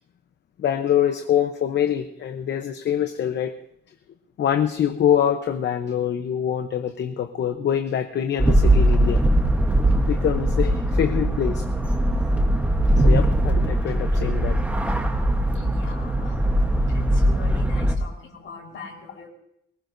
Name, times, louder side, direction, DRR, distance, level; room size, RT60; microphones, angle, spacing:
voice 1, 0.6-3.6 4.4-9.2 10.0-11.6 13.0-14.6 18.4-18.5, left 9 dB, 60° left, 7 dB, 0.9 m, -24 dB
sound 1, 8.4-17.9, right 1 dB, 5° right, 1.1 m, -20 dB
voice 2, 15.5-16.4 16.9-19.3, left 3 dB, 90° left, -2 dB, 4.4 m, -41 dB
23.0 x 19.5 x 2.7 m, 0.75 s
wide cardioid pair, 170°, 20 cm